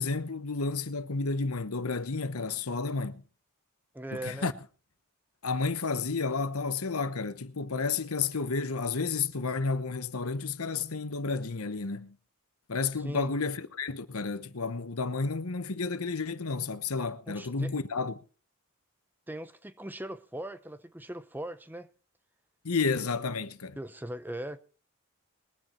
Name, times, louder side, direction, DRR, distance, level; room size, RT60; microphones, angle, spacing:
voice 1, 0.0-3.2 4.1-4.5 5.4-12.1 12.7-18.1 22.6-23.8, left 4 dB, 85° left, 1.1 m, -31 dB
voice 2, 3.9-4.5 12.9-13.3 17.3-17.7 19.3-21.9 23.8-24.6, right 1 dB, 10° right, 0.7 m, -39 dB
21.5 x 9.2 x 4.4 m
head